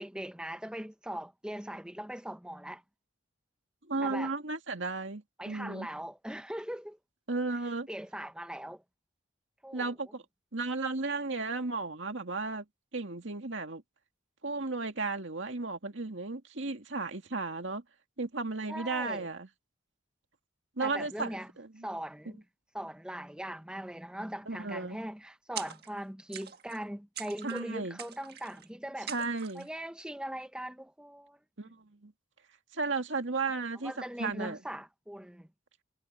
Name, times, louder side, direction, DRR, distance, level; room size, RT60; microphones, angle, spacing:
voice 1, 0.0-2.8 4.0-4.3 5.4-7.0 7.9-8.8 9.6-9.9 18.7-19.3 20.8-21.5 21.8-22.4 22.7-29.1 29.5-31.4 33.8-35.5, equal, 5° right, 0.7 m, -40 dB
voice 2, 3.9-5.9 7.3-7.9 9.7-10.2 10.5-12.6 12.9-13.8 14.4-17.8 18.2-19.5 20.8-21.9 24.5-25.0 27.4-28.0 29.1-29.7 31.6-32.1 32.7-34.6, right 3 dB, 65° right, 2.3 m, -34 dB
sound 1, 25.6-26.0 26.3-26.8 27.2-27.6 28.0-28.7 29.1-29.7, right 9 dB, 50° right, 1.7 m, -43 dB
head